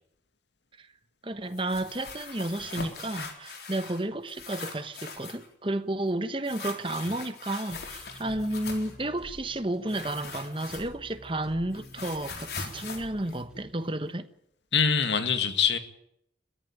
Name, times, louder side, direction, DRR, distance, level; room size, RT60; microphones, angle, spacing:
voice 1, 1.2-14.3, right 1 dB, 30° right, 1.2 m, -32 dB
sound 1, 1.5-4.0 4.3-5.5 6.5-9.0 9.9-11.2 11.5-14.1, left 4 dB, 70° left, 4.0 m, -41 dB
sound 2, 7.7-13.7, equal, 5° right, 7.5 m, -49 dB
voice 2, 14.7-15.8, left 6 dB, 85° left, 2.1 m, -24 dB
22.0 x 14.5 x 9.0 m
head